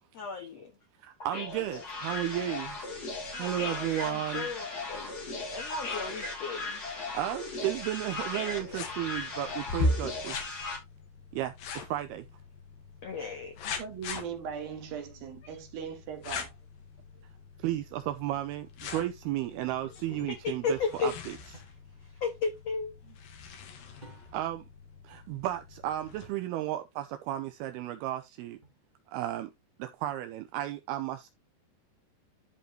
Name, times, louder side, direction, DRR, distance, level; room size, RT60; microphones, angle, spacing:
voice 1, 0.1-0.7 3.3-3.5 4.0-6.8 13.0-13.8 20.4-21.1 22.0-22.9, left 5 dB, 80° left, 1.4 m, -35 dB
voice 2, 1.0-2.8 3.4-4.5 7.1-10.6 11.3-12.3 17.6-21.3 24.3-24.7 25.0-28.6 29.1-29.5 29.8-31.3, right 14 dB, 80° right, 2.4 m, -34 dB
sound 1, 1.2-10.8, left 3 dB, 30° left, 2.4 m, -37 dB
sound 2, 8.5-26.3, left 2 dB, 60° left, 3.1 m, -40 dB
voice 3, 13.8-16.5 17.1-17.2, right 7 dB, 65° right, 2.9 m, -39 dB
sound 3, 21.5-21.8 24.0-24.6 26.2-26.5 28.6-29.1, right 1 dB, 15° right, 2.2 m, -54 dB
13.0 x 4.9 x 3.1 m
omnidirectional pair, 5.1 m